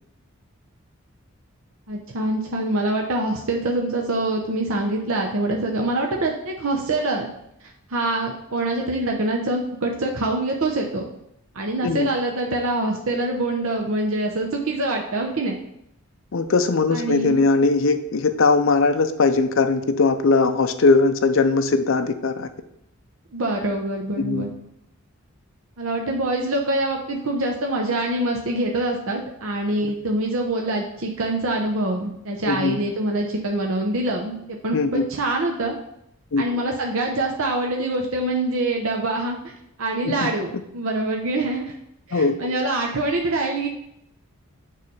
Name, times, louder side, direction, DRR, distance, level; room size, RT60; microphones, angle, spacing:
voice 1, 1.9-7.3 7.9-11.0 11.5-15.6 16.9-17.4 23.3-24.5 25.8-35.8 36.4-39.5 39.8-41.7 42.1-43.7, right 2 dB, 70° right, 1 dB, 0.7 m, -25 dB
voice 2, 16.3-22.5 24.2-24.4 29.8-29.9 32.5-32.8 34.7-35.1 36.3-36.6 40.0-40.3 42.1-42.6, left 3 dB, 60° left, 9 dB, 0.5 m, -20 dB
6.7 x 3.3 x 5.4 m, 0.78 s
head